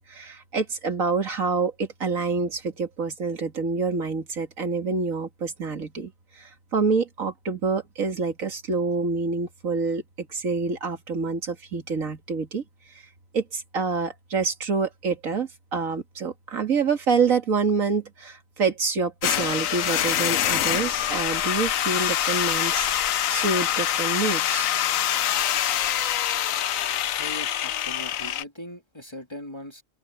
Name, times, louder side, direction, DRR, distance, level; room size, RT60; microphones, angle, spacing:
voice 1, 0.0-12.6 13.3-22.9 23.3-24.7, right 4 dB, 80° right, 2.5 m, -27 dB
sound 1, 19.2-28.4, left 11 dB, 80° left, 1.1 m, -25 dB
voice 2, 27.1-29.8, left 1 dB, 20° left, 2.4 m, -40 dB
open air
omnidirectional pair, 1.4 m